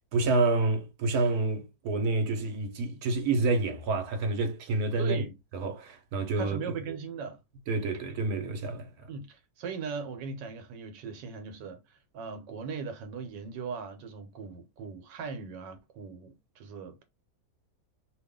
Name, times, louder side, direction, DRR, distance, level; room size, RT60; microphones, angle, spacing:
voice 1, 0.1-5.2 5.5-6.8 7.7-9.1, right 3 dB, 65° right, 1.1 m, -28 dB
voice 2, 5.0-5.3 6.4-7.4 9.1-17.0, right 5 dB, 85° right, 1.3 m, -39 dB
2.8 x 2.3 x 3.5 m
omnidirectional pair, 1.9 m